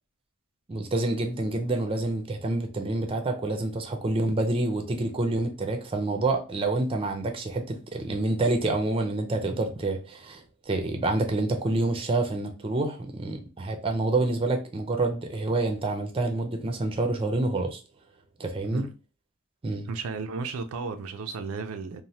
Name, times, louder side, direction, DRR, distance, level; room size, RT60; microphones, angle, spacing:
voice 1, 0.7-17.8 18.4-18.9 19.6-19.9, right 2 dB, 25° right, 0.5 m, -27 dB
voice 2, 19.8-22.0, right 4 dB, 80° right, 0.4 m, -34 dB
3.1 x 2.1 x 2.7 m
head